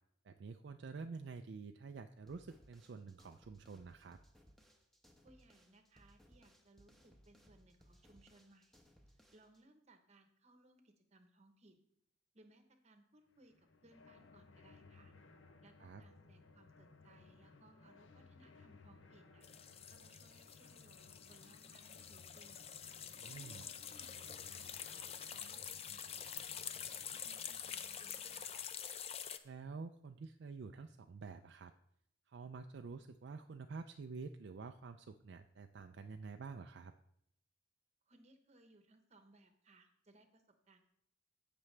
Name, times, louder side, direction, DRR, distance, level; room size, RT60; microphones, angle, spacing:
voice 1, 0.2-4.2 15.8-16.0 23.2-23.6 29.4-31.7 32.3-36.9, right 4 dB, 55° right, 6 dB, 0.4 m, -49 dB
sound 1, 2.3-9.6, equal, ahead, 0.9 m, -66 dB
voice 2, 5.2-8.7 9.3-11.8 12.3-15.1 15.6-19.5 19.9-22.6 23.2-25.6 25.9-26.6 27.1-28.6 38.1-40.9, right 2 dB, 35° right, 7 dB, 1.0 m, -66 dB
sound 2, 13.3-29.1, left 3 dB, 70° left, 0.8 m, -62 dB
sound 3, 19.4-29.4, left 8 dB, 30° left, 0.4 m, -47 dB
15.5 x 6.0 x 3.3 m, 0.73 s
head